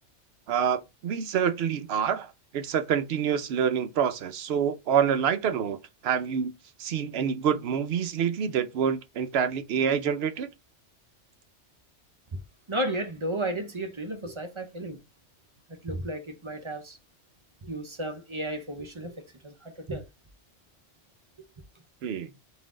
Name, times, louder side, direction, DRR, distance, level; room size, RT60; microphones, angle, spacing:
voice 1, 0.5-5.8 6.0-6.5 6.8-10.5 22.0-22.3, right 8 dB, 65° right, 0.8 m, -27 dB
voice 2, 12.7-15.0 15.7-17.0 17.6-20.1, right 1 dB, 30° right, 0.7 m, -33 dB
4.1 x 2.6 x 3.7 m
omnidirectional pair, 1.2 m